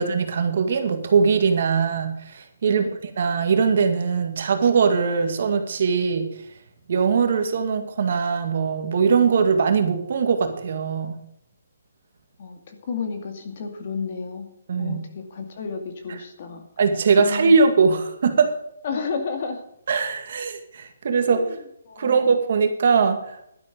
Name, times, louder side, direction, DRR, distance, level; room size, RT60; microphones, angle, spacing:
voice 1, 0.0-6.3 6.9-11.2 14.7-15.0 16.8-18.5 19.9-21.4 22.0-23.4, right 5 dB, 45° right, 6 dB, 1.9 m, -21 dB
voice 2, 2.6-2.9 12.4-14.5 14.8-16.6 17.2-17.5 18.8-19.6 21.2-21.6 21.9-22.2, left 5 dB, 40° left, 5 dB, 2.2 m, -32 dB
12.0 x 11.0 x 5.2 m, 0.73 s
hypercardioid pair, 170°, 0 cm